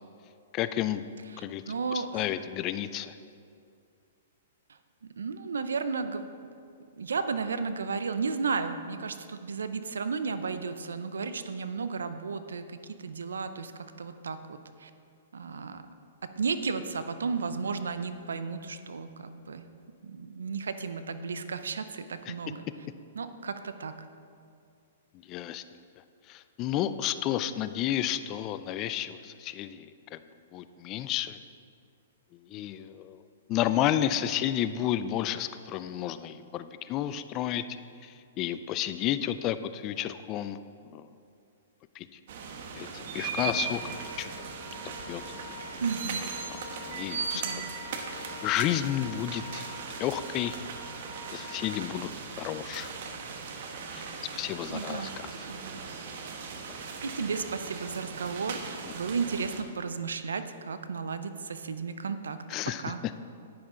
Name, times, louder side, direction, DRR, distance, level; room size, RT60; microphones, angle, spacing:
voice 1, 0.5-1.0 1.4-1.6 1.9-3.2 22.3-22.4 25.3-25.6 26.3-30.2 30.5-31.4 32.5-33.2 33.5-37.6 38.0-40.6 40.9-41.1 42.0-42.2 42.7-44.3 44.8-45.2 46.9-47.7 48.4-49.7 50.0-50.6 51.3-52.9 53.9-54.0 54.3-55.3 62.5-62.9, left 11 dB, 35° left, 12 dB, 0.4 m, -31 dB
voice 2, 1.3-2.3 5.2-6.5 7.0-14.9 15.3-15.8 16.2-19.7 20.0-22.7 23.2-24.1 45.8-46.2 47.3-47.7 54.7-55.1 55.5-55.8 57.0-62.4 62.8-63.0, right 5 dB, 85° right, 10 dB, 0.6 m, -34 dB
sound 1, 42.3-59.6, right 5 dB, 60° right, 1.1 m, -38 dB
Wind instrument woodwind instrument, 43.5-51.9, left 4 dB, 60° left, 2.3 m, -46 dB
10.0 x 9.6 x 3.8 m, 2.4 s
hypercardioid pair, 130°, 0 cm